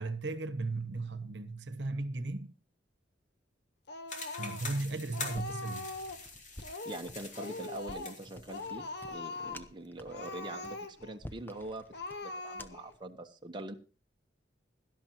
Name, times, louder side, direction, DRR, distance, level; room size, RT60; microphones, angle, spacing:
voice 1, 0.0-2.5 4.4-5.9, right 2 dB, 70° right, 1.1 m, -36 dB
Speech, 3.9-4.8 5.1-6.3 6.6-7.1 7.4-8.2 8.5-9.7 10.1-11.2 11.5-11.6 11.9-12.9, left 3 dB, 65° left, 1.1 m, -42 dB
sound 1, 4.1-8.7, left 3 dB, 45° left, 3.0 m, -45 dB
sound 2, 5.3-13.0, left 1 dB, 10° left, 0.8 m, -51 dB
voice 2, 6.8-11.8 12.2-13.8, right 2 dB, 25° right, 1.1 m, -43 dB
17.5 x 12.0 x 3.0 m
head